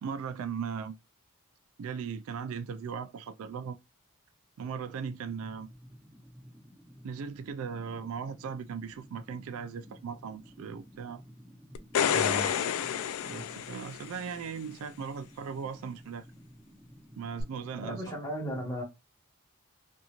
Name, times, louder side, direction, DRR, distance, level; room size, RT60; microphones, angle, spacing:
voice 1, 0.0-1.0 1.8-3.8 4.6-5.7 7.0-11.2 13.2-16.2 17.2-18.0, right 6 dB, 75° right, 0.3 m, -38 dB
sound 1, 5.1-18.1, equal, 10° right, 1.0 m, -53 dB
sound 2, 11.8-14.3 17.4-17.5, left 8 dB, 75° left, 0.3 m, -29 dB
voice 2, 12.1-12.5 17.8-18.8, equal, 15° left, 1.3 m, -35 dB
2.9 x 2.6 x 2.3 m
head